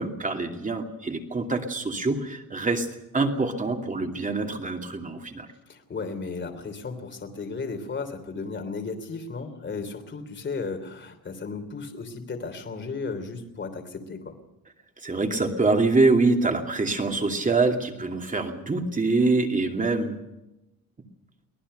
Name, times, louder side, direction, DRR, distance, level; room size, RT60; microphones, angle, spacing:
voice 1, 0.0-2.9 3.1-5.5 15.0-20.2, right 3 dB, 20° right, 4 dB, 2.7 m, -25 dB
voice 2, 5.7-14.3, left 4 dB, 30° left, 6 dB, 3.3 m, -34 dB
24.0 x 18.5 x 6.8 m, 0.91 s
cardioid pair, 140°, 35 cm